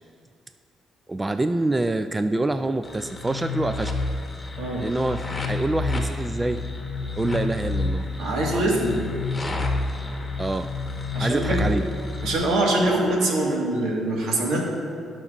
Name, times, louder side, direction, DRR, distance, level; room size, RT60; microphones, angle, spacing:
voice 1, 1.1-3.9 4.8-6.6 7.2-8.1 8.5-8.6 10.4-10.7 11.2-11.8, right 2 dB, 20° right, 9 dB, 0.3 m, -26 dB
sound 1, 2.8-12.3, left 3 dB, 25° left, 1.2 m, -29 dB
voice 2, 8.2-9.0 11.1-11.7 12.2-14.6, right 1 dB, 80° right, -1 dB, 1.6 m, -23 dB
17.0 x 5.9 x 2.5 m, 2.3 s
cardioid pair, 90°, 0 cm